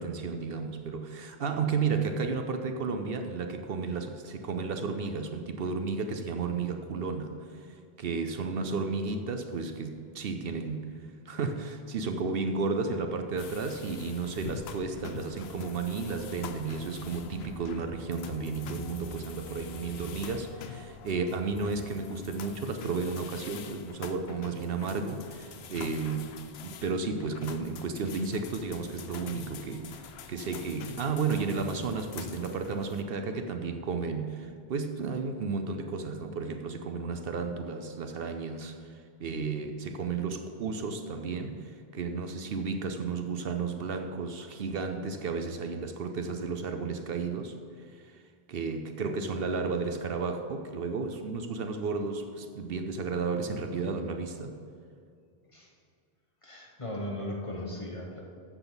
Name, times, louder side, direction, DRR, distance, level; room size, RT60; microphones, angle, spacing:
voice 1, 0.0-10.9 11.3-26.3 26.6-30.0 30.3-47.6 47.9-48.2 48.5-54.5, right 4 dB, 65° right, 7 dB, 0.8 m, -33 dB
sound 1, 13.4-33.0, left 7 dB, 80° left, 0.9 m, -45 dB
voice 2, 56.4-58.2, left 1 dB, 30° left, -1 dB, 1.4 m, -37 dB
13.5 x 7.2 x 4.0 m, 2.2 s
omnidirectional pair, 1.1 m